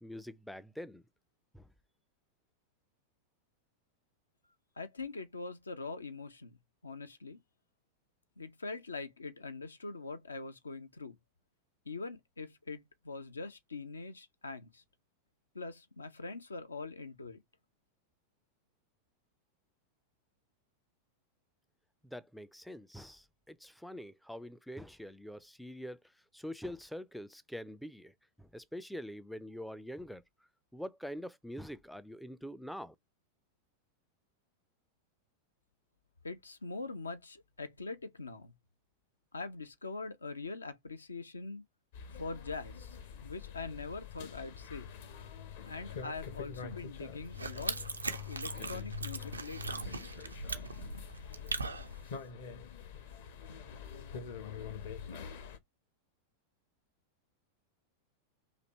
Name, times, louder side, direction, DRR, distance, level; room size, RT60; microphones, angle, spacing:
voice 1, 0.0-1.0 1.5-1.6 22.0-26.0 26.3-28.1 28.4-30.2 30.7-32.9, equal, ahead, 0.4 m, -44 dB
voice 2, 4.8-6.6 6.8-7.4 8.4-11.2 11.9-14.8 15.5-17.4 36.2-38.5 39.3-41.6 42.2-43.0 43.2-44.9 45.6-47.8 48.1-49.9, left 3 dB, 75° left, 0.5 m, -43 dB
sound 1, 41.9-55.6, left 7 dB, 55° left, 0.8 m, -45 dB
sound 2, 47.2-52.2, right 3 dB, 80° right, 0.4 m, -40 dB
4.1 x 2.7 x 3.0 m
figure-of-eight pair, 90°, 0 cm